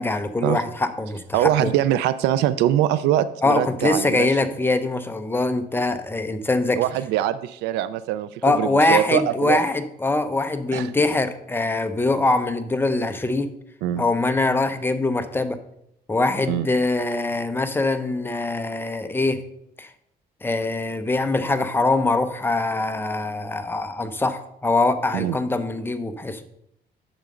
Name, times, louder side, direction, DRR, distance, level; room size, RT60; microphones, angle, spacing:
voice 1, 0.0-1.7 3.4-6.8 8.4-13.5 14.0-15.6 16.1-19.4 19.8-19.9 20.4-26.4, left 2 dB, 15° left, 8 dB, 0.7 m, -23 dB
voice 2, 1.3-4.3 6.8-9.6 10.7-10.9 13.8-14.0 16.5-16.7 25.1-25.4, right 12 dB, 90° right, 14 dB, 0.5 m, -23 dB
8.9 x 6.5 x 3.8 m, 0.77 s
cardioid pair, 110°, 17 cm